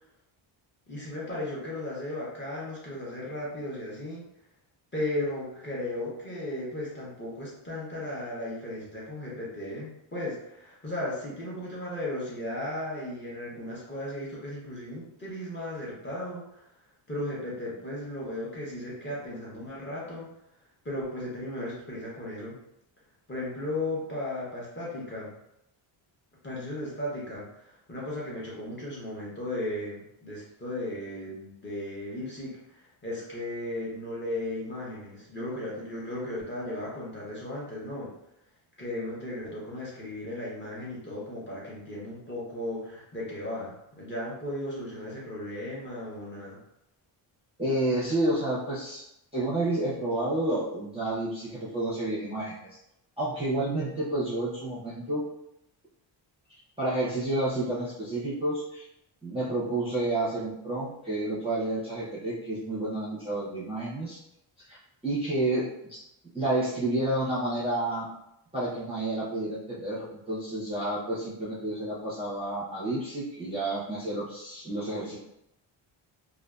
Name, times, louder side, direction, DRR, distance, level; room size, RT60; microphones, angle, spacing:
voice 1, 0.9-4.3 4.9-16.7 17.1-20.3 20.8-22.6 23.3-25.3 26.4-38.1 38.8-46.6, left 1 dB, 25° left, -6 dB, 0.7 m, -36 dB
voice 2, 47.6-49.0 49.3-52.7 53.2-55.2 56.8-58.9 59.2-64.2 64.7-64.8 65.0-65.7 66.3-68.1 68.5-75.2, right 1 dB, 15° right, -10 dB, 0.5 m, -30 dB
2.6 x 2.3 x 2.2 m, 0.82 s
wide cardioid pair, 160°, 48 cm